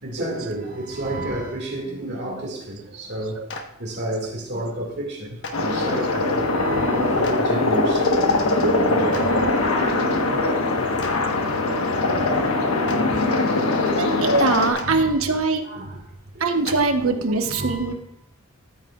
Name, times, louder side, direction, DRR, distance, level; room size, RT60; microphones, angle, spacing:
voice 1, 0.0-3.4 3.8-8.0 8.5-10.6 14.0-14.1 14.6-16.0 16.3-16.5 17.0-17.9, right 1 dB, 55° right, 2.0 m, -31 dB
Clapping, 3.5-3.6 5.4-5.5 7.2-7.3 9.1-9.2 11.0-11.1 12.8-13.0 14.7-14.8 16.6-16.7, left 4 dB, 60° left, 1.2 m, -32 dB
sound 1, 5.5-14.7, left 2 dB, 90° left, 1.3 m, -21 dB
voice 2, 14.0-15.6 16.4-17.9, right 3 dB, 75° right, 1.1 m, -22 dB
13.5 x 8.2 x 2.4 m
head